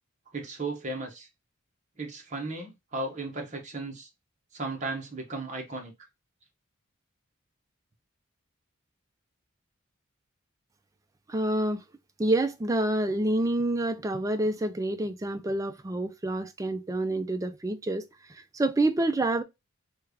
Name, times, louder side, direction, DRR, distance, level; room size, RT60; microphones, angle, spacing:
voice 1, 0.3-1.3 2.0-4.1 4.5-5.9, right 2 dB, 35° right, 1.0 m, -35 dB
voice 2, 11.3-11.8 12.2-19.4, right 2 dB, 15° right, 0.3 m, -28 dB
3.3 x 2.4 x 3.3 m
head